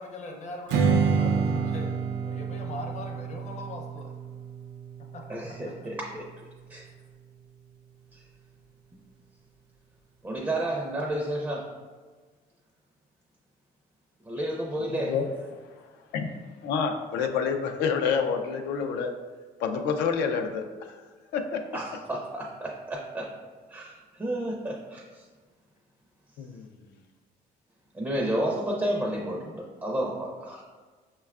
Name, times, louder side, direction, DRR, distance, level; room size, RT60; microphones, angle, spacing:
voice 1, 0.0-1.9 2.3-4.1 5.1-5.2 5.6-5.7, left 2 dB, 45° left, 1 dB, 0.7 m, -40 dB
Strum, 0.7-5.9, right 5 dB, 85° right, 0.4 m, -28 dB
voice 2, 5.3-6.3 6.7-6.9 8.1-8.2 10.2-11.7 14.2-15.1 21.7-23.3 23.7-25.2 27.9-30.6, right 1 dB, 10° right, -1 dB, 0.4 m, -31 dB
voice 3, 16.6-19.1 19.6-20.7 21.3-21.6 26.4-26.7, left 6 dB, 80° left, 5 dB, 0.4 m, -27 dB
5.4 x 2.2 x 2.3 m, 1.4 s
cardioid pair, 110°, 17 cm